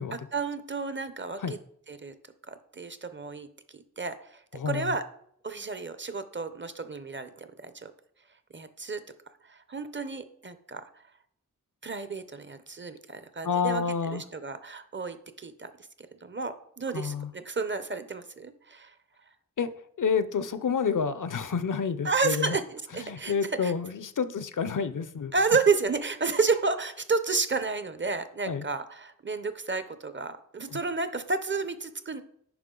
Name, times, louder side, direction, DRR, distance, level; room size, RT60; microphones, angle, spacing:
voice 1, 0.1-1.6 1.9-2.1 2.5-3.5 3.7-5.0 5.4-7.9 8.5-9.0 9.5-10.8 11.8-13.8 14.1-15.7 16.2-18.9 22.0-23.3 23.6-23.7 24.2-24.3 25.3-32.2, right 4 dB, 35° right, 11 dB, 0.6 m, -31 dB
voice 2, 4.5-4.9 13.4-14.2 16.9-17.3 19.6-19.7 20.0-22.6 23.0-25.3 28.4-28.7 30.7-30.8, left 6 dB, 70° left, 13 dB, 0.6 m, -29 dB
9.4 x 5.4 x 3.8 m, 0.67 s
wide cardioid pair, 75°, 33 cm